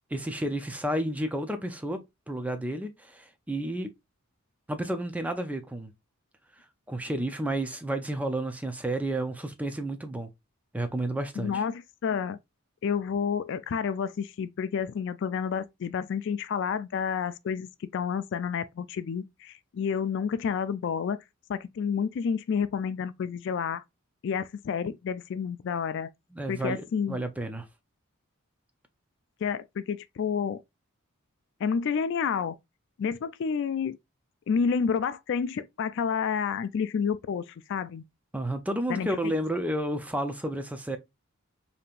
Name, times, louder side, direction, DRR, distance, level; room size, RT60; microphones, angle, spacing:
voice 1, 0.1-2.0 2.3-3.9 4.7-5.9 6.9-10.3 10.7-11.5 26.3-27.7 38.3-41.0, right 1 dB, 5° right, 0.4 m, -31 dB
voice 2, 11.4-12.4 12.8-21.2 21.5-23.8 24.2-26.1 26.5-27.2 29.4-30.6 31.6-32.6 33.0-34.0 34.5-38.0 38.9-39.3, left 6 dB, 55° left, 0.3 m, -30 dB
5.1 x 2.8 x 2.5 m
head